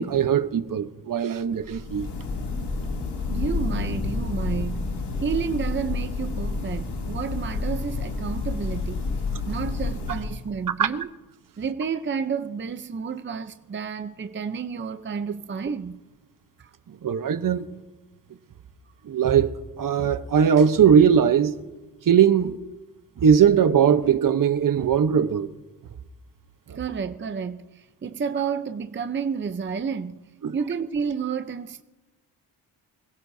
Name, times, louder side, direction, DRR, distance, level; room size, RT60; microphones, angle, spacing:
voice 1, 0.0-2.1 10.8-10.9 17.0-17.7 19.1-21.6 22.1-22.6 23.2-25.5 26.7-26.8 30.4-30.5, right 8 dB, 55° right, 1.0 m, -20 dB
sound 1, 1.6-10.7, left 3 dB, 80° left, 2.9 m, -29 dB
voice 2, 3.3-4.9 5.2-9.1 9.5-11.1 11.6-16.0 16.6-16.7 26.7-30.2 30.5-31.8, right 6 dB, 30° right, 0.7 m, -30 dB
26.0 x 16.5 x 2.7 m
cardioid pair, 75°, 40 cm